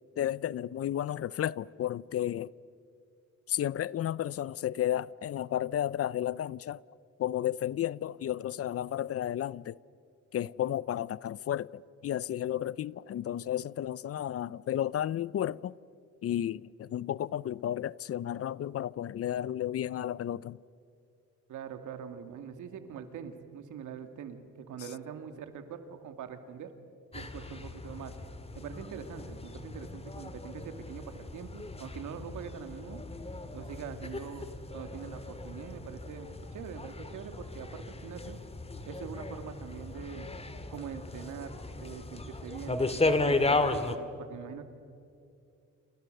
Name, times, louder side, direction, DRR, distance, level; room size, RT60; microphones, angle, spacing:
voice 1, 0.2-2.5 3.5-6.8 7.2-9.8 10.3-15.7 16.2-20.6, left 11 dB, 50° left, 0.6 m, -32 dB
voice 2, 21.5-26.7 27.1-28.2 28.5-33.0 33.5-34.5 34.7-38.4 38.9-40.3 40.7-44.7, right 7 dB, 80° right, 2.4 m, -43 dB
sound 1, 27.1-44.0, left 2 dB, 20° left, 1.9 m, -35 dB
30.0 x 28.0 x 6.8 m
cardioid pair, 90°, 30 cm